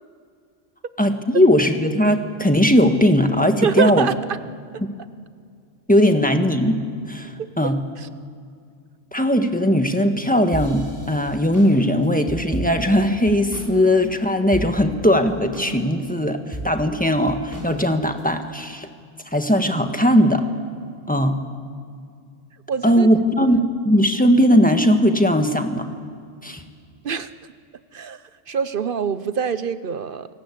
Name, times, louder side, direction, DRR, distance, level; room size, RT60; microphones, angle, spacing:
voice 1, 1.0-4.1 4.8-4.9 5.9-6.8 7.1-7.3 7.6-7.8 9.1-18.9 19.3-20.4 21.1-21.4 22.8-25.9 26.4-26.6, equal, 5° left, 6 dB, 1.5 m, -18 dB
voice 2, 3.6-4.4 4.7-4.8 7.4-7.5 8.0-8.1 22.7-23.1 23.5-23.6 27.0-27.5 27.9-30.3, right 6 dB, 50° right, 13 dB, 0.8 m, -25 dB
sound 1, 10.5-13.8 14.0-14.1 14.5-15.1 15.5-16.1 16.5-18.3, right 1 dB, 15° right, 4.0 m, -33 dB
28.5 x 19.0 x 8.5 m, 2.2 s
omnidirectional pair, 1.3 m